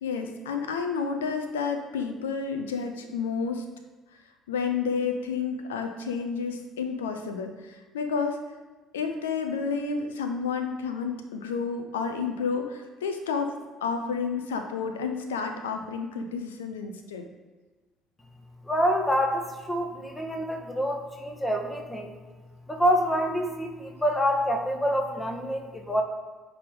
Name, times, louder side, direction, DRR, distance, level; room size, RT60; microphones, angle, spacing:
voice 1, 0.0-3.7 4.5-8.4 8.9-17.3, left 5 dB, 80° left, 6 dB, 0.5 m, -30 dB
voice 2, 18.6-22.1 22.7-26.0, equal, 15° left, 2 dB, 1.3 m, -27 dB
9.5 x 3.5 x 3.6 m, 1.2 s
figure-of-eight pair, 55°, 0 cm